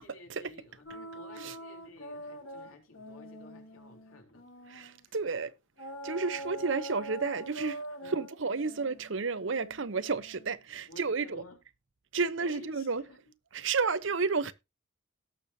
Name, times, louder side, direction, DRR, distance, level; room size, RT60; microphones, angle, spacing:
voice 1, 0.0-4.4 4.8-5.1 6.3-6.6 8.0-8.3 10.9-11.6 12.4-13.2, left 1 dB, 85° left, 3.6 m, -53 dB
sound 1, 0.9-5.0 5.8-10.5, right 1 dB, 70° left, 2.5 m, -44 dB
voice 2, 4.7-5.5 6.0-11.4 12.1-13.0 13.5-14.5, right 4 dB, 65° right, 0.8 m, -31 dB
18.0 x 6.7 x 2.8 m
head